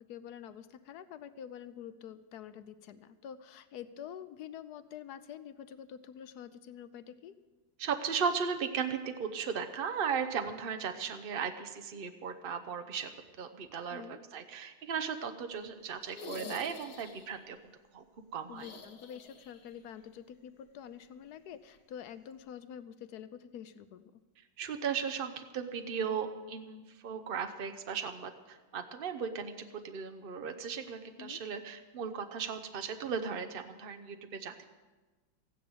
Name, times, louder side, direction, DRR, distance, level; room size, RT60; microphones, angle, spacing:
voice 1, 0.1-7.4 13.9-14.2 18.5-24.1 31.2-31.4, left 9 dB, 65° left, 13 dB, 1.1 m, -47 dB
voice 2, 7.8-13.1 13.4-14.0 14.3-17.6 17.9-18.0 18.3-18.7 24.6-34.6, right 6 dB, 65° right, 7 dB, 0.5 m, -36 dB
sound 1, 16.0-17.4 18.5-19.7 20.0-20.1 21.7-21.8, left 4 dB, 90° left, 2.4 m, -47 dB
15.0 x 9.8 x 7.9 m, 1.2 s
omnidirectional pair, 2.1 m